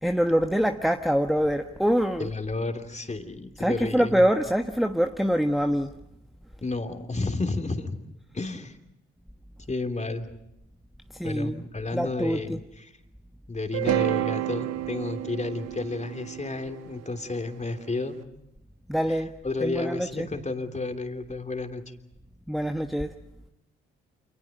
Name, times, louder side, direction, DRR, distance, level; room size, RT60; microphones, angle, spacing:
voice 1, 0.0-2.3 3.6-6.0 11.1-11.6 11.9-12.6 18.9-20.3 22.5-23.2, equal, ahead, 1.3 m, -25 dB
voice 2, 2.2-4.2 6.6-8.0 8.3-8.8 9.6-10.3 11.2-12.9 13.5-18.2 19.1-19.2 19.4-21.9, left 3 dB, 20° left, 3.2 m, -31 dB
sound 1, 13.7-17.9, right 14 dB, 55° right, 1.5 m, -30 dB
29.5 x 28.0 x 5.3 m
figure-of-eight pair, 40°, 31 cm